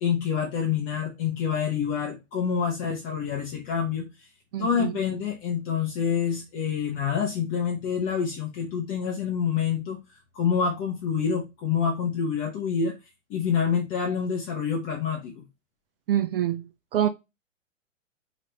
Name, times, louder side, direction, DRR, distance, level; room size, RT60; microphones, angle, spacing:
voice 1, 0.0-4.3 4.6-10.0 10.3-13.0 13.3-15.5, left 7 dB, 20° left, 0.7 m, -27 dB
voice 2, 4.5-4.9 16.1-16.6 16.9-17.1, right 11 dB, 45° right, 0.5 m, -25 dB
4.2 x 3.0 x 3.0 m
figure-of-eight pair, 115°, 39 cm